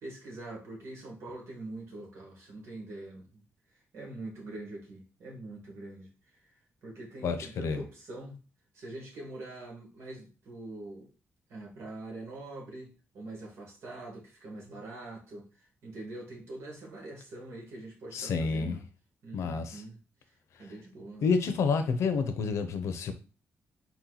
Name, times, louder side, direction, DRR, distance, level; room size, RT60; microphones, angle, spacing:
voice 1, 0.0-3.4 3.9-6.4 6.8-8.4 8.7-11.1 11.5-18.8 19.2-20.0 20.6-21.3, right 2 dB, 75° right, 2.0 m, -44 dB
voice 2, 7.2-7.8 18.1-18.8 19.3-19.8 21.2-23.1, left 5 dB, 85° left, 0.7 m, -29 dB
4.3 x 3.0 x 4.0 m
wide cardioid pair, 175°, 5 cm